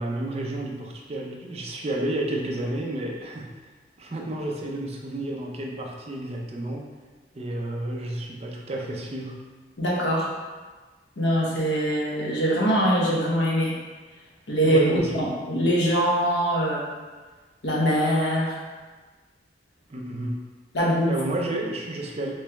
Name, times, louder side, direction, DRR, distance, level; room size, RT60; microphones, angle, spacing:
voice 1, 0.0-3.5 4.0-6.9 7.3-9.4 14.6-15.3 19.9-20.4 21.1-22.3, right 1 dB, 35° right, -1 dB, 0.5 m, -31 dB
voice 2, 9.8-10.3 11.2-13.8 14.5-16.8 17.6-18.6 20.7-21.1, equal, 80° left, -4 dB, 0.9 m, -23 dB
3.2 x 3.1 x 3.4 m, 1.3 s
head